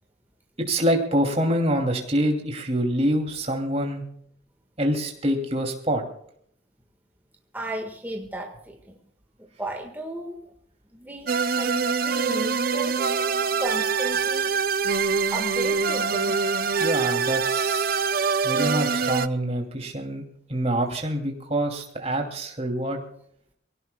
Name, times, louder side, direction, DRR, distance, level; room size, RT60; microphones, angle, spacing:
voice 1, 0.6-4.0 4.8-6.0 16.8-18.1 18.4-20.2 20.5-23.0, right 1 dB, 30° right, 3 dB, 2.8 m, -25 dB
voice 2, 7.5-9.0 9.6-10.5 10.9-12.9 13.6-14.5 15.3-16.4, right 1 dB, 10° right, 2 dB, 1.6 m, -34 dB
sound 1, 11.3-19.3, right 5 dB, 45° right, 0.6 m, -24 dB
24.0 x 17.5 x 2.3 m, 0.67 s
head